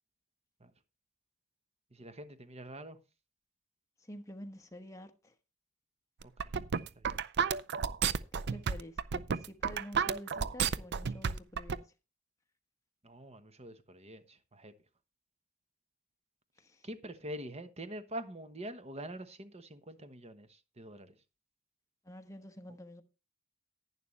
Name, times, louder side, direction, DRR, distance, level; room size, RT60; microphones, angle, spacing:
voice 1, 1.9-3.0 6.2-6.5 7.0-7.2 13.0-14.7 16.8-21.1, right 1 dB, 30° right, 1.1 m, -45 dB
voice 2, 4.0-5.3 8.5-11.8 16.6-16.9 22.0-23.0, equal, 15° left, 1.2 m, -48 dB
sound 1, 6.2-11.8, right 6 dB, 55° right, 0.5 m, -31 dB
11.0 x 10.5 x 3.3 m
head